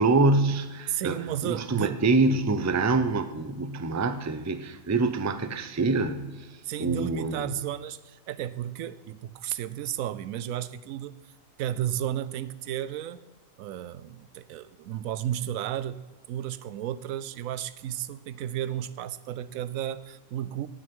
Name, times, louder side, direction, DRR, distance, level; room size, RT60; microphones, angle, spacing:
voice 1, 0.0-6.5 6.8-7.6, right 3 dB, 20° right, 9 dB, 0.5 m, -25 dB
voice 2, 0.9-2.0 6.6-11.1 11.6-13.3 13.6-16.0 16.3-20.7, right 11 dB, 85° right, 16 dB, 1.0 m, -33 dB
17.0 x 6.1 x 5.4 m, 1.2 s
omnidirectional pair, 1.4 m